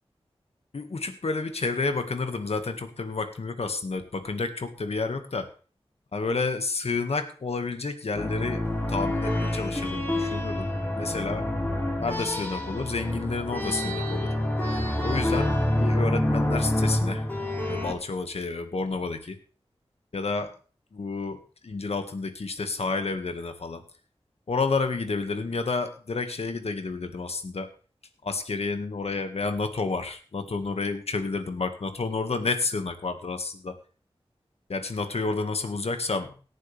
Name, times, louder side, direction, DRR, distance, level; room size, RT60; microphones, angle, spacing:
voice 1, 0.7-5.5 6.1-10.7 11.0-11.5 12.0-14.3 15.0-17.3 17.7-19.4 20.1-20.5 20.9-23.8 24.5-27.7 28.2-33.8 34.7-36.3, left 3 dB, 80° left, 7 dB, 1.7 m, -30 dB
sound 1, 8.2-17.9, left 1 dB, 20° left, 4.2 m, -27 dB
17.5 x 11.0 x 3.4 m, 0.39 s
wide cardioid pair, 65°, 10 cm